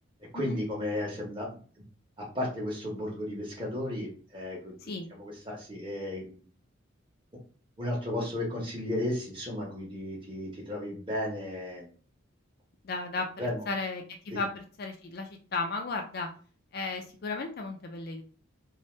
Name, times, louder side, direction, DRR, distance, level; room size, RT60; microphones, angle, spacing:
voice 1, 0.3-1.5 2.2-4.7 5.1-6.4 7.8-11.9 13.4-13.6 14.3-14.4, left 1 dB, 25° right, -3 dB, 1.1 m, -34 dB
voice 2, 12.8-13.3 13.7-16.3 16.7-18.2, left 3 dB, 45° left, 3 dB, 0.4 m, -34 dB
2.7 x 2.2 x 3.2 m, 0.40 s
head